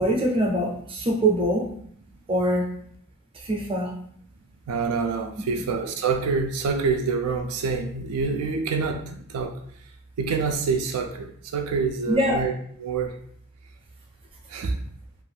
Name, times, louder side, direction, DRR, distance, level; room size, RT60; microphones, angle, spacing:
voice 1, 0.0-1.7 2.3-2.7 3.4-3.9 12.1-12.4, right 1 dB, 25° right, 0 dB, 0.5 m, -23 dB
voice 2, 4.7-9.6 10.2-12.5 12.8-13.2 14.5-14.8, right 5 dB, 85° right, 5 dB, 0.4 m, -26 dB
2.4 x 2.3 x 3.3 m, 0.62 s
head